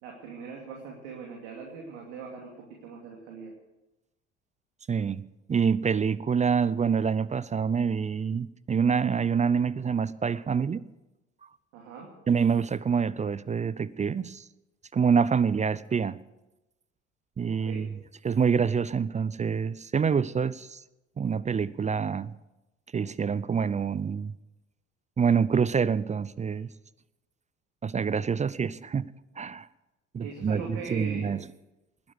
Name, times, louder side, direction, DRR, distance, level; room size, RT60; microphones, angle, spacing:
voice 1, 0.0-2.5 2.8-3.5 11.7-12.1 17.6-17.8 30.2-31.3, right 4 dB, 65° right, 0 dB, 2.8 m, -40 dB
voice 2, 4.9-5.2 5.5-10.8 12.3-14.4 14.9-16.2 17.4-17.9 18.2-20.8 21.2-22.3 22.9-24.3 25.2-26.7 27.8-29.1 29.4-29.7 30.1-31.5, right 6 dB, 20° right, 20 dB, 0.5 m, -26 dB
20.0 x 10.5 x 6.6 m, 0.99 s
figure-of-eight pair, 60°, 36 cm